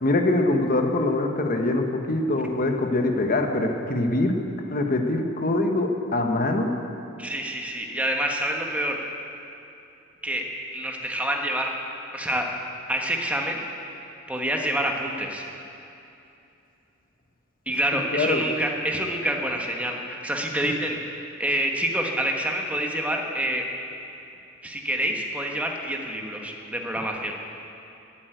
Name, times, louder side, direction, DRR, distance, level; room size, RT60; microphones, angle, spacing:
voice 1, 0.0-4.3 4.7-6.7 18.1-18.4, left 2 dB, 45° left, 3 dB, 1.2 m, -23 dB
voice 2, 7.2-9.1 10.2-10.4 10.7-11.8 12.1-12.5 12.9-13.6 14.3-15.4 17.7-23.6 24.6-27.4, right 1 dB, 5° right, 1 dB, 1.4 m, -27 dB
13.0 x 8.8 x 9.2 m, 2.7 s
head